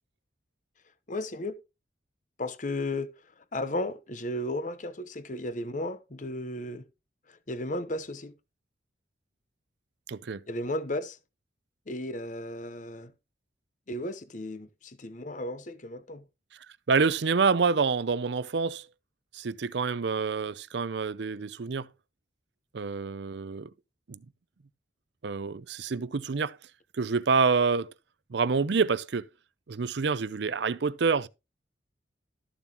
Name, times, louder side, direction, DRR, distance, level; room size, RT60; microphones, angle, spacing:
voice 1, 1.1-1.5 2.4-6.9 7.3-8.3 10.5-11.2 11.9-13.1 13.9-16.2, left 1 dB, 40° left, 0.8 m, -34 dB
voice 2, 10.1-10.4 16.9-18.9 19.3-21.9 22.7-23.7 24.1-24.2 25.2-26.6 26.9-27.9 28.3-29.3 29.7-31.3, right 5 dB, 65° right, 0.5 m, -27 dB
13.5 x 7.1 x 2.9 m
head